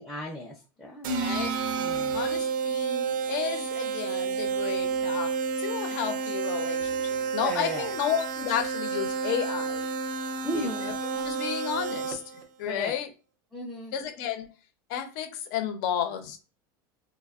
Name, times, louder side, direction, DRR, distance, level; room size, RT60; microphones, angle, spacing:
voice 1, 0.0-1.1 1.7-2.2 7.4-7.9 10.4-10.9 12.6-13.0 13.5-13.9, equal, ahead, 0.5 m, -35 dB
sound 1, 1.0-12.4, right 5 dB, 85° right, 0.5 m, -30 dB
voice 2, 1.2-1.5 1.9-9.9 10.5-12.2 12.6-13.1 13.9-14.5 14.9-16.4, left 9 dB, 70° left, 0.7 m, -32 dB
3.1 x 2.1 x 2.4 m
supercardioid pair, 150°, 11 cm